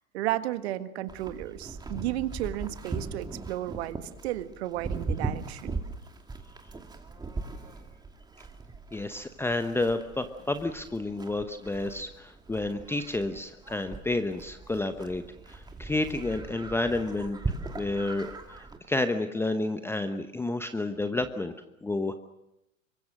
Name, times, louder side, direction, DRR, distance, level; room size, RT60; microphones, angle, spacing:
voice 1, 0.1-5.8, right 14 dB, 50° right, 11 dB, 1.6 m, -33 dB
Livestock farm animals working animals, 1.1-18.8, right 3 dB, 10° right, 2.5 m, -39 dB
voice 2, 8.9-17.4 17.8-21.5 21.8-22.1, left 2 dB, 5° left, 9 dB, 0.9 m, -30 dB
27.5 x 23.5 x 6.4 m, 0.91 s
figure-of-eight pair, 95°, 40 cm